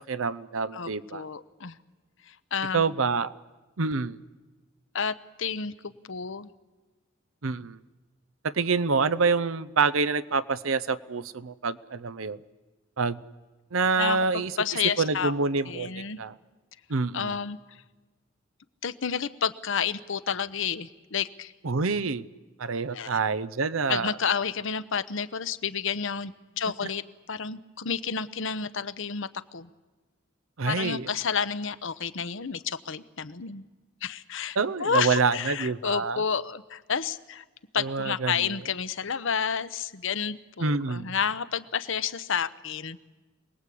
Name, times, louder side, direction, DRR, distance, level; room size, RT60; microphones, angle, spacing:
voice 1, 0.1-1.3 2.7-3.3 3.8-4.2 7.4-7.8 8.4-12.4 13.0-13.2 13.7-14.6 15.0-16.3 16.9-17.4 21.6-22.2 22.6-24.2 30.6-31.1 34.6-36.2 37.8-38.6 40.6-41.1, right 4 dB, 80° right, 15 dB, 0.8 m, -27 dB
voice 2, 0.7-1.8 2.3-2.8 4.9-6.5 14.0-15.3 15.7-16.2 17.1-17.6 18.8-21.5 22.9-23.2 23.9-27.0 27.3-29.7 30.6-33.7 34.0-37.4 37.7-43.0, left 6 dB, 70° left, 13 dB, 0.9 m, -30 dB
27.0 x 19.5 x 8.5 m, 1.2 s
head